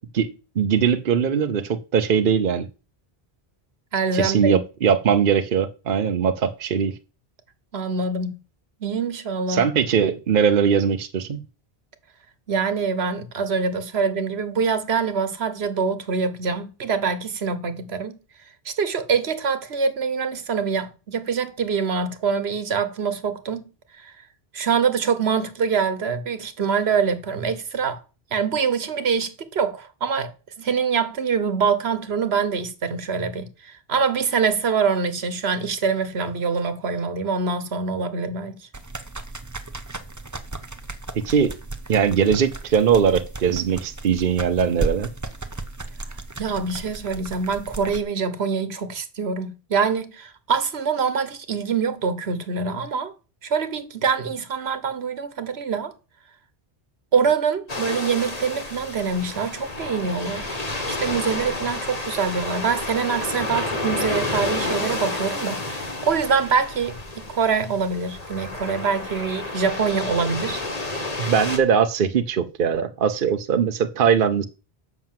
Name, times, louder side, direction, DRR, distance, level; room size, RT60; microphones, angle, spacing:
voice 1, 0.1-2.7 4.1-6.9 9.5-11.4 41.2-41.5 41.9-45.1 71.2-74.5, right 7 dB, 60° right, 0.9 m, -21 dB
voice 2, 3.9-4.6 7.7-8.4 8.8-9.6 12.5-18.2 18.6-23.6 24.0-24.1 24.5-28.0 28.3-30.3 30.6-38.5 46.4-53.1 53.4-55.9 57.1-67.0 67.3-70.6, right 5 dB, 85° right, 1.4 m, -24 dB
sound 1, 38.7-48.0, right 2 dB, 20° right, 0.9 m, -35 dB
sound 2, 57.7-71.6, left 2 dB, 40° left, 1.8 m, -30 dB
7.5 x 6.0 x 7.5 m
omnidirectional pair, 1.0 m